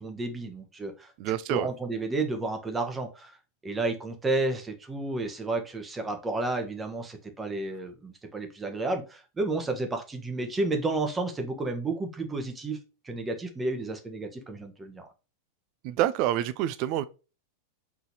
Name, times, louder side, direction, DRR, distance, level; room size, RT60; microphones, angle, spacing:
voice 1, 0.0-3.4 3.6-12.8 13.0-15.1, right 2 dB, 15° right, 1.0 m, -31 dB
voice 2, 1.2-1.7 15.8-17.0, right 12 dB, 45° right, 0.5 m, -27 dB
4.6 x 3.9 x 2.8 m
figure-of-eight pair, 90°, 0 cm